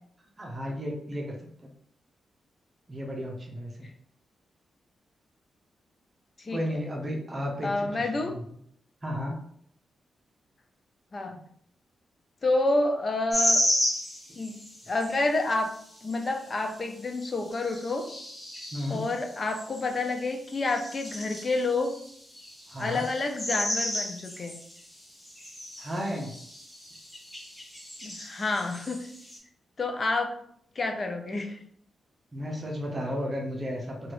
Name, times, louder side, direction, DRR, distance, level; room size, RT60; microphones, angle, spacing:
voice 1, 0.4-1.7 2.9-3.9 6.5-8.6 9.0-9.4 11.3-11.4 18.7-19.1 22.7-23.1 25.8-26.3 32.3-34.1, equal, 30° right, -1 dB, 0.7 m, -34 dB
voice 2, 6.4-6.8 7.6-8.3 11.1-11.4 12.4-13.6 14.4-14.6 14.9-15.7 16.0-18.1 18.9-21.9 22.8-24.6 28.0-29.0 29.8-30.3 30.8-31.6, left 2 dB, 40° left, 5 dB, 0.5 m, -29 dB
sound 1, 13.3-15.1 15.7-16.2 16.7-16.8 17.1-20.2 20.5-29.4, left 1 dB, 15° left, 0.9 m, -33 dB
2.9 x 2.4 x 3.0 m, 0.66 s
cardioid pair, 80°, 0 cm